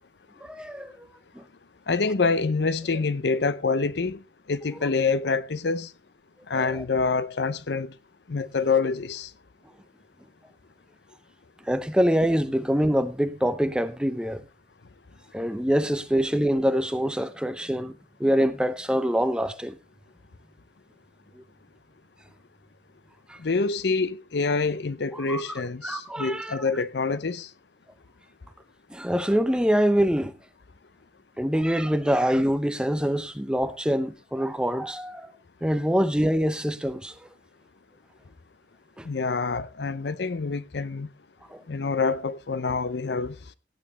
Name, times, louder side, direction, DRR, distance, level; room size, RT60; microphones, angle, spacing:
voice 1, 0.4-1.1 1.3-1.4 6.6-6.8 11.6-14.5 15.3-19.8 21.4-21.5 23.3-23.4 25.1-25.5 25.8-26.6 28.9-30.3 31.4-35.3 35.6-37.1 39.0-39.1 41.5-41.6, equal, 5° right, 0.7 m, -25 dB
voice 2, 1.9-4.2 4.5-5.9 6.5-7.9 8.3-9.3 23.4-27.5 39.0-41.1 41.7-43.4, left 4 dB, 65° left, 0.6 m, -26 dB
17.0 x 8.9 x 3.1 m
head